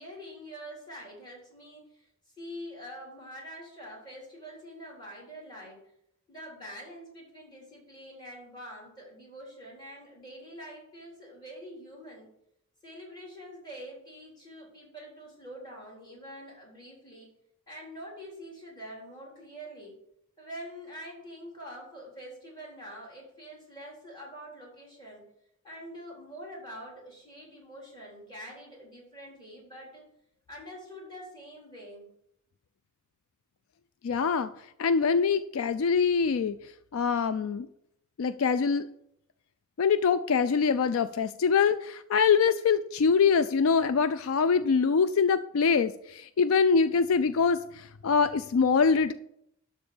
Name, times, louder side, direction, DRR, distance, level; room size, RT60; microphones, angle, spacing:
voice 1, 0.0-5.8 6.3-12.3 12.8-17.3 17.7-20.0 20.4-25.2 25.6-30.0 30.5-32.1, equal, 20° left, -2 dB, 3.7 m, -45 dB
voice 2, 34.0-34.5 34.8-36.6 36.9-37.7 38.2-38.9 39.8-49.1, left 5 dB, 70° left, 13 dB, 0.4 m, -24 dB
12.0 x 4.2 x 7.0 m, 0.76 s
head